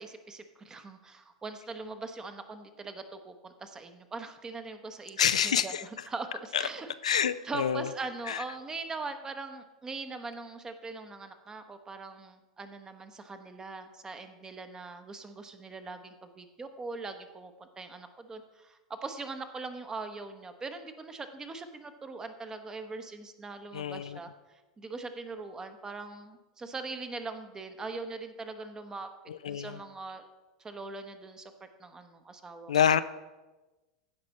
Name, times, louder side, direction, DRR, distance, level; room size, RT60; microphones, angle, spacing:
voice 1, 0.0-29.1 29.5-30.2 30.6-32.7, right 3 dB, 20° right, 8 dB, 1.0 m, -41 dB
voice 2, 5.2-5.8 6.5-6.6 7.0-7.9 8.3-8.4 23.7-24.2 29.3-29.8 32.7-33.0, left 8 dB, 75° left, 13 dB, 0.4 m, -27 dB
15.5 x 5.2 x 4.2 m, 1.1 s
figure-of-eight pair, 90°, 4 cm